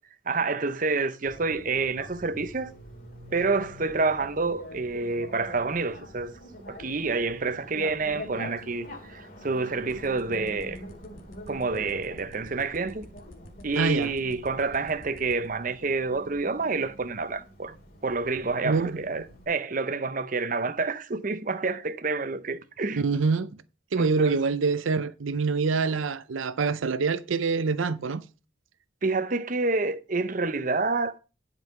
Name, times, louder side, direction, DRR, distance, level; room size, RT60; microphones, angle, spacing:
voice 1, 0.3-2.7 3.3-6.3 6.7-10.8 11.5-13.1 13.6-17.7 18.0-23.0 24.0-24.4 29.0-31.2, right 3 dB, 45° right, 0.7 m, -28 dB
Bicycle, 1.2-19.4, left 1 dB, 50° left, 2.6 m, -45 dB
sound 1, 9.9-15.5, left 1 dB, 90° left, 2.0 m, -48 dB
voice 2, 13.8-14.1 18.6-19.0 23.0-23.5 23.9-28.2, right 4 dB, 85° right, 0.6 m, -25 dB
10.5 x 5.5 x 5.5 m
head